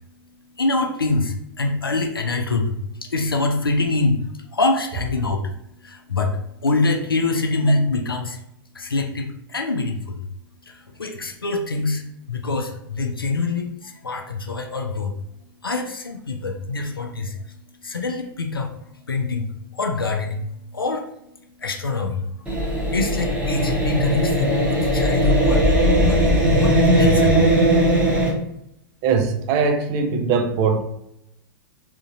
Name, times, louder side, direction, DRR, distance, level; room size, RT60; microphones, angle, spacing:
voice 1, 0.6-4.2 4.5-5.4 5.8-8.4 8.7-10.2 10.7-15.1 15.6-17.4 17.8-18.7 19.1-20.5 20.7-21.0 21.6-22.2 22.9-27.4, left 3 dB, 80° left, 0.5 m, -24 dB
sound 1, 22.5-28.3, right 1 dB, 10° right, 1.0 m, -18 dB
voice 2, 29.0-30.8, right 5 dB, 35° right, 0.5 m, -21 dB
3.7 x 2.9 x 2.6 m
figure-of-eight pair, 100°, 12 cm